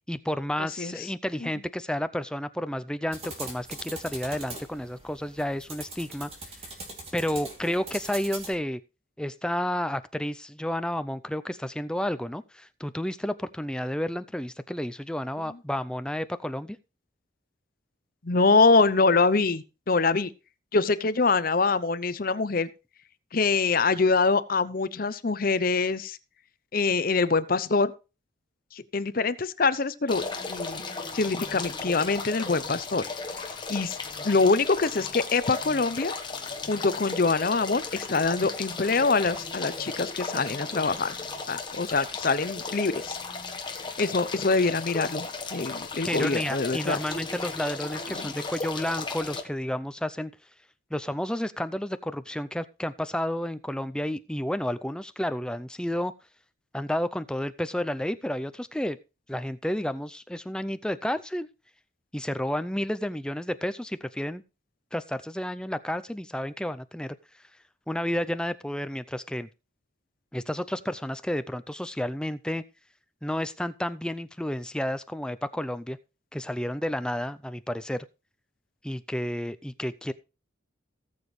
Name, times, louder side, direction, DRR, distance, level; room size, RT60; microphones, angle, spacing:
voice 1, 0.1-6.3 6.6-6.7 7.1-8.8 9.2-16.8 46.0-50.3 50.9-56.1 56.7-59.0 59.3-61.5 62.1-64.4 64.9-67.2 67.9-69.5 70.3-72.6 73.2-76.0 76.3-78.1 78.8-80.1, left 1 dB, 5° left, 12 dB, 0.4 m, -31 dB
voice 2, 0.6-0.9 1.4-1.5 18.2-20.3 20.7-22.7 23.3-26.2 26.7-27.9 28.7-30.2 30.5-30.8 31.1-33.1 33.7-34.0 34.2-36.1 36.7-41.2 41.5-43.2 44.0-47.0 48.1-48.3, left 4 dB, 45° left, 14 dB, 0.7 m, -24 dB
sound 1, 3.1-8.5, right 2 dB, 30° right, 2.8 m, -41 dB
sound 2, 30.1-49.4, left 4 dB, 25° left, 1.2 m, -35 dB
18.0 x 7.1 x 3.2 m, 0.31 s
head